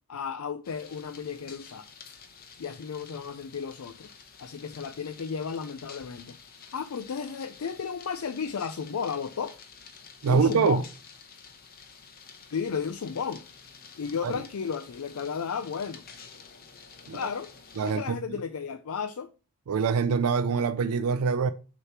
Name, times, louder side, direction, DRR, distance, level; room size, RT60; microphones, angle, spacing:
voice 1, 0.1-1.9 2.6-4.1 4.4-6.4 6.7-9.6 10.2-10.9 12.5-13.4 14.0-16.0 17.1-17.5 17.8-19.3, left 6 dB, 75° left, 0.4 m, -33 dB
sound 1, 0.6-18.0, left 6 dB, 40° left, 0.9 m, -50 dB
voice 2, 10.2-10.8 14.2-14.3 17.1-17.3 17.8-18.4 19.7-21.5, right 5 dB, 85° right, 0.4 m, -25 dB
6.5 x 3.1 x 5.6 m
head